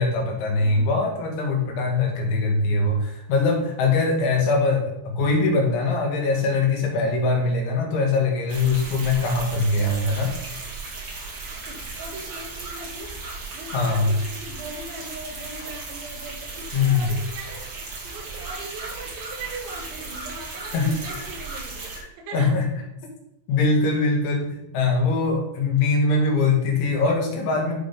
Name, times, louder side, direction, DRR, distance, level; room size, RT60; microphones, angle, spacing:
voice 1, 0.0-10.3 13.7-14.1 16.7-17.1 20.7-21.0 22.0-22.1 22.3-22.7 23.5-27.7, left 3 dB, 90° left, 0 dB, 4.3 m, -22 dB
voice 2, 0.6-1.1 11.7-13.2 13.5-22.6, right 2 dB, 85° right, 0 dB, 4.2 m, -39 dB
sound 1, 8.5-22.0, right 3 dB, 40° right, 2.6 m, -36 dB
12.5 x 4.3 x 5.2 m, 0.86 s
omnidirectional pair, 5.2 m